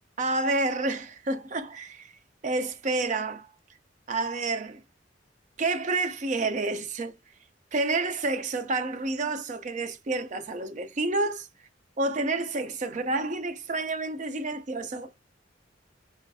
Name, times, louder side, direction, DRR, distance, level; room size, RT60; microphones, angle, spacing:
voice 1, 0.2-2.1 2.4-3.5 4.1-4.8 5.6-7.1 7.7-11.5 12.0-15.1, right 2 dB, 40° right, 0.5 m, -29 dB
4.9 x 2.6 x 2.3 m
head